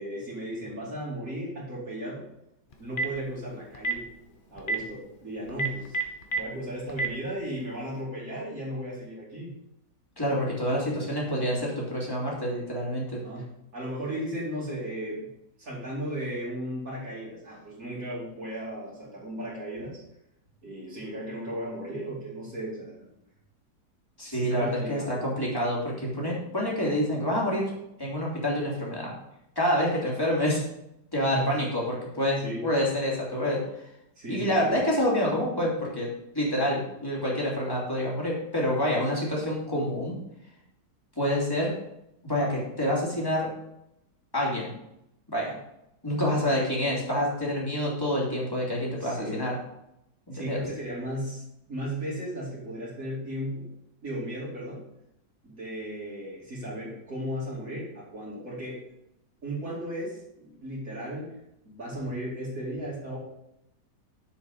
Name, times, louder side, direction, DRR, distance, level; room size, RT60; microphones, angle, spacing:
voice 1, 0.0-2.3 2.8-4.1 4.5-6.0 6.3-9.5 13.2-15.2 15.6-20.0 20.6-23.1 24.3-25.2 31.2-31.6 32.4-32.7 34.2-34.7 46.2-46.5 49.0-49.5 50.3-53.7 54.0-54.8 55.4-58.8 59.4-61.3 61.6-63.2, equal, 50° right, -6 dB, 3.3 m, -35 dB
Telephone, 2.7-3.2 3.7-4.0 4.6-4.8 5.5-6.4 6.9-7.1, right 3 dB, 35° left, 1.1 m, -27 dB
voice 2, 10.2-13.2 24.2-27.7 28.0-29.1 29.6-30.6 31.1-33.6 34.3-36.1 36.3-40.1 41.2-41.7 42.2-43.5 44.3-44.7 45.3-45.5 46.0-49.6 50.3-50.6, equal, 15° left, -4 dB, 2.9 m, -27 dB
7.3 x 7.1 x 5.3 m, 0.83 s
omnidirectional pair, 1.8 m